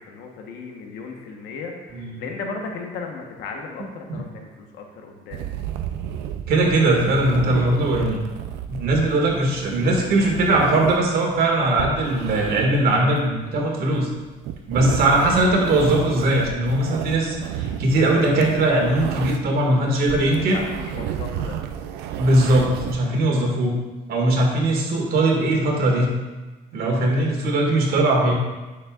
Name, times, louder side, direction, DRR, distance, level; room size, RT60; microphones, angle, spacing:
voice 1, 0.0-5.5 15.0-15.2 19.8-19.9 20.2-21.6, left 4 dB, 90° left, 2 dB, 1.2 m, -36 dB
voice 2, 1.9-2.2 4.1-4.2 6.5-8.2 8.7-14.1 14.7-20.6 22.2-23.7 24.1-26.1 26.7-28.3, right 1 dB, 65° right, 0 dB, 2.0 m, -20 dB
sound 1, 5.3-19.6 19.9-23.0, right 9 dB, 90° right, 0.5 m, -32 dB
9.6 x 6.6 x 2.5 m, 1.2 s
cardioid pair, 110°, 17 cm